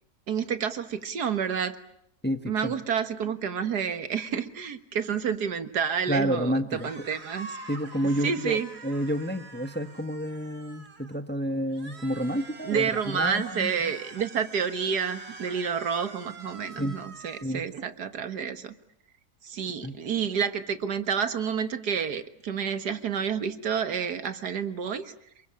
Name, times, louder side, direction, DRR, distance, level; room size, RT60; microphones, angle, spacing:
voice 1, 0.3-1.8 2.5-7.6 8.2-8.7 12.6-18.7 19.4-25.1, right 7 dB, 80° right, 11 dB, 2.0 m, -29 dB
voice 2, 2.2-2.7 6.1-7.0 7.7-13.9 16.8-17.0 17.4-17.6 19.8-19.9, equal, 10° left, 9 dB, 1.0 m, -30 dB
sound 1, 6.7-11.2 11.7-17.4, right 3 dB, 40° right, 2.1 m, -45 dB
28.5 x 22.0 x 8.7 m, 0.74 s
omnidirectional pair, 1.7 m